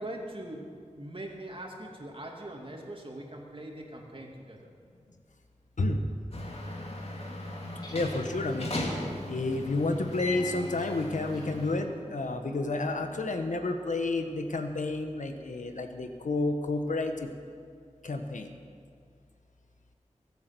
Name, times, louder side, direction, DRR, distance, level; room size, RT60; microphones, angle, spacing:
voice 1, 0.0-4.7, right 1 dB, 45° right, 0 dB, 2.7 m, -42 dB
sound 1, 6.3-11.8, left 1 dB, 55° left, 2.7 m, -37 dB
sound 2, 7.7-13.7, left 1 dB, 35° left, 3.2 m, -48 dB
voice 2, 7.9-8.7 9.3-17.3 18.0-18.5, left 2 dB, 80° left, 6 dB, 1.2 m, -30 dB
22.5 x 8.7 x 6.2 m, 2.2 s
cardioid pair, 45°, 13 cm